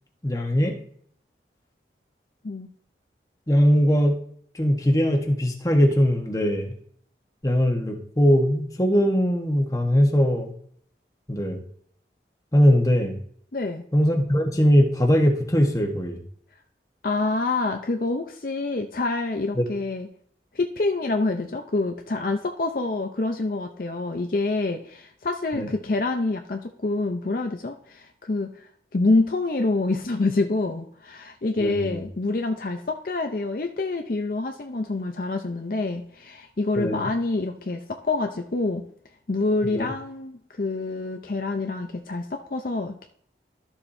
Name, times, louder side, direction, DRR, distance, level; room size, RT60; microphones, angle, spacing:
voice 1, 0.2-0.8 3.5-4.2 4.6-6.7 7.4-10.5 11.3-11.6 12.5-13.1 13.9-16.2 19.6-19.7 25.5-25.7 31.6-32.0 36.8-37.1 39.7-39.9, equal, 20° left, 2 dB, 1.1 m, -21 dB
voice 2, 13.5-13.8 17.0-20.1 20.5-28.5 28.9-38.8 39.3-43.1, left 3 dB, 50° left, 4 dB, 0.6 m, -26 dB
13.0 x 7.1 x 2.7 m, 0.63 s
head